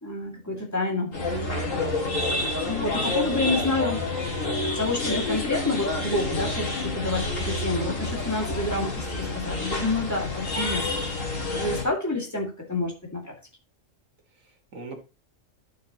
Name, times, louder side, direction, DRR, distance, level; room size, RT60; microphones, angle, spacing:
voice 1, 0.0-1.1 2.6-4.0 4.8-11.3 11.5-13.3, left 2 dB, 15° left, 0 dB, 2.1 m, -29 dB
sound 1, 1.1-11.8, left 2 dB, 75° left, 2.6 m, -28 dB
voice 2, 3.0-3.5 14.4-15.0, right 3 dB, 90° right, 2 dB, 2.1 m, -41 dB
11.5 x 6.4 x 2.9 m, 0.31 s
omnidirectional pair, 1.3 m